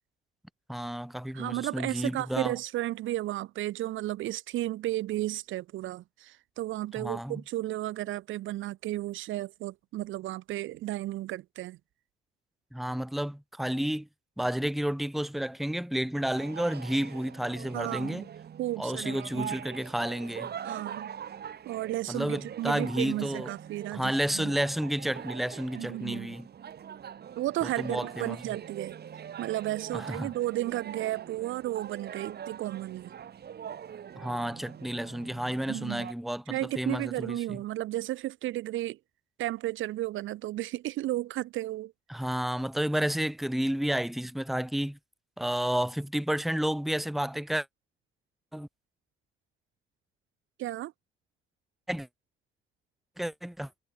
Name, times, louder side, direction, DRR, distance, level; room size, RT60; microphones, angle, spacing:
voice 1, 0.7-2.5 7.0-7.4 12.7-14.1 14.4-18.3 18.8-20.5 22.1-23.5 23.9-26.5 27.6-28.4 29.9-30.3 34.2-37.6 42.1-45.0 45.4-47.7 48.5-48.7 51.9-52.1 53.2-53.7, right 1 dB, ahead, 0.8 m, -31 dB
voice 2, 1.3-11.8 17.7-18.3 18.6-19.6 20.6-21.1 21.7-24.5 25.7-26.3 27.3-29.0 29.4-33.1 35.7-36.1 36.5-39.0 39.4-41.9 50.6-50.9, right 15 dB, 80° right, 0.8 m, -33 dB
sound 1, 16.3-36.1, right 8 dB, 55° right, 2.1 m, -43 dB
cardioid pair, 90°, 20 cm